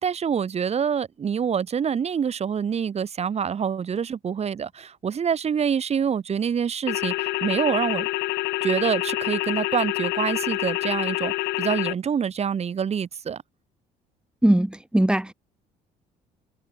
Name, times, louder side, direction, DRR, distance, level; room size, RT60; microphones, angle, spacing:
voice 1, 0.0-8.1 8.6-13.4, right 7 dB, 40° right, 2.3 m, -26 dB
sound 1, 6.9-11.9, left 19 dB, 85° left, 1.8 m, -27 dB
voice 2, 14.4-15.3, right 1 dB, 5° right, 5.3 m, -20 dB
cardioid pair, 110°, 17 cm